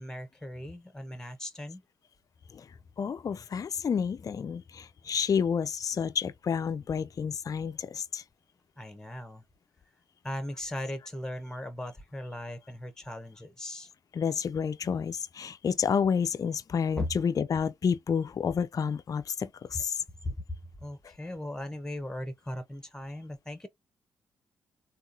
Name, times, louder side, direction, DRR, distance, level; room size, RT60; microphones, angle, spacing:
voice 1, 0.0-1.8 8.8-9.4 10.2-13.9 17.0-17.1 19.7-19.8 20.2-23.7, left 1 dB, 5° left, 0.9 m, -38 dB
voice 2, 3.0-8.2 14.1-20.0, left 6 dB, 40° left, 0.4 m, -30 dB
3.6 x 2.3 x 2.6 m
hypercardioid pair, 40°, 9 cm